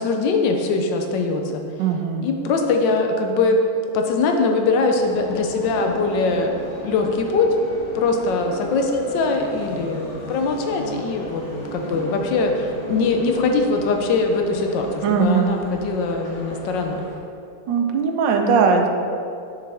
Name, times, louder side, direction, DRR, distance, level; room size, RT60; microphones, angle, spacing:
voice 1, 0.0-1.6 2.2-3.6 3.9-6.5 6.8-7.6 7.9-11.4 11.7-17.0, left 3 dB, 75° left, 3 dB, 1.3 m, -22 dB
voice 2, 1.8-2.3 15.0-15.6 17.7-18.9, right 5 dB, 80° right, 3 dB, 1.3 m, -19 dB
sound 1, 4.9-17.2, right 1 dB, 50° left, 1.6 m, -36 dB
6.6 x 6.6 x 3.4 m, 2.5 s
omnidirectional pair, 2.0 m